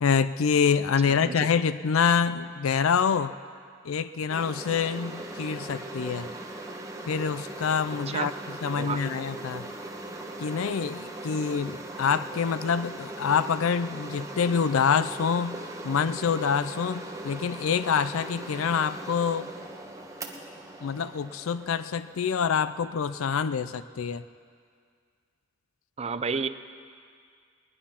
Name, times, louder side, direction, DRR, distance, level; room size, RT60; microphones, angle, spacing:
voice 1, 0.0-3.3 3.8-6.3 7.0-8.3 8.6-9.7 10.4-15.6 15.8-19.5 20.8-24.2, left 6 dB, 90° left, 14 dB, 0.4 m, -26 dB
voice 2, 1.0-1.5 8.1-8.3 8.8-9.0 26.0-26.5, right 5 dB, 30° right, 11 dB, 0.5 m, -31 dB
sound 1, 4.3-22.8, right 2 dB, 15° right, 1.2 m, -40 dB
20.0 x 11.0 x 5.7 m, 2.1 s
head